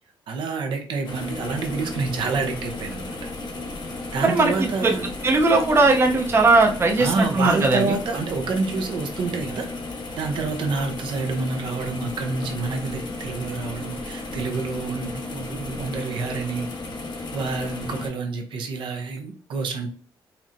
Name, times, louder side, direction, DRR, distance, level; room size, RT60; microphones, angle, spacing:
voice 1, 0.3-3.2 4.1-5.1 7.0-9.7 10.2-16.7 17.3-19.9, right 4 dB, 70° right, 3 dB, 0.7 m, -28 dB
sound 1, 1.0-18.1, left 2 dB, 55° left, 0.9 m, -34 dB
voice 2, 4.2-4.9 5.2-7.9, right 3 dB, 30° right, 1 dB, 0.6 m, -19 dB
4.2 x 2.1 x 2.5 m, 0.40 s
cardioid pair, 95°, 9 cm